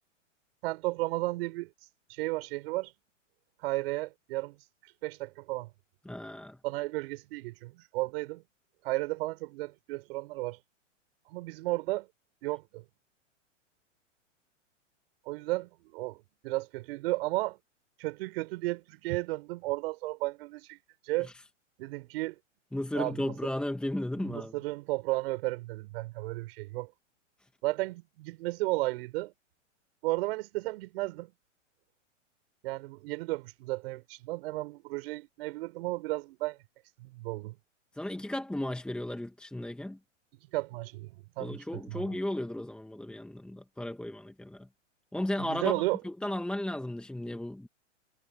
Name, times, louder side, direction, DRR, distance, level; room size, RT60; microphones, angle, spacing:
voice 1, 0.6-1.7 2.1-2.9 3.6-4.6 4.8-5.7 6.6-8.4 8.8-10.6 11.3-12.1 12.4-12.8 15.2-16.2 16.4-17.6 18.0-20.8 21.0-21.3 21.8-22.3 22.9-23.2 24.2-26.9 27.6-29.3 30.0-31.3 32.6-36.6 37.0-37.5 40.5-42.0 45.5-46.0, right 20 dB, 50° right, 6.7 m, -33 dB
voice 2, 6.1-6.6 21.2-21.3 22.7-24.6 37.9-40.0 41.4-44.7 45.1-47.7, left 1 dB, ahead, 1.8 m, -35 dB
hypercardioid pair, 120°, 38 cm